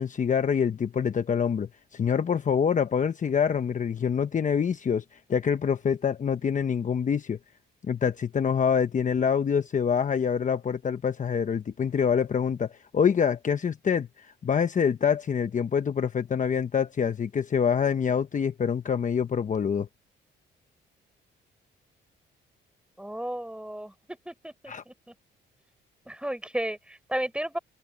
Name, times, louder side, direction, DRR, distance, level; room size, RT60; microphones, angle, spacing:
voice 1, 0.0-5.0 5.3-7.4 7.8-19.9 24.7-24.8, left 7 dB, 40° left, 1.0 m, -26 dB
voice 2, 23.0-24.9 26.1-27.6, right 1 dB, 5° right, 4.0 m, -33 dB
cardioid pair, 90°, 20 cm